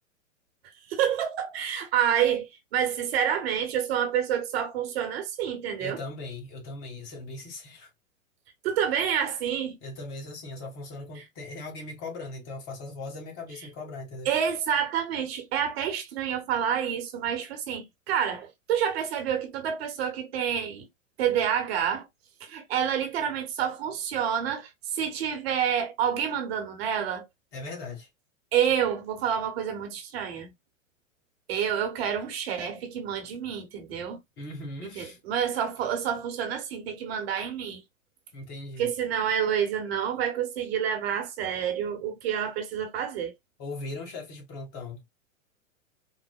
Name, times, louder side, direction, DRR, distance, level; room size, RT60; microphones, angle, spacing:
voice 1, 0.9-6.0 8.6-9.8 14.2-20.9 21.2-22.1 22.4-27.2 28.5-30.5 31.5-34.2 34.9-37.8 38.8-43.3, right 8 dB, 50° right, 1.0 m, -28 dB
voice 2, 5.8-7.9 9.8-14.3 27.5-28.1 34.4-35.2 38.3-38.9 43.6-45.0, left 2 dB, 40° left, 1.5 m, -39 dB
3.9 x 2.1 x 2.2 m
figure-of-eight pair, 105°, 39 cm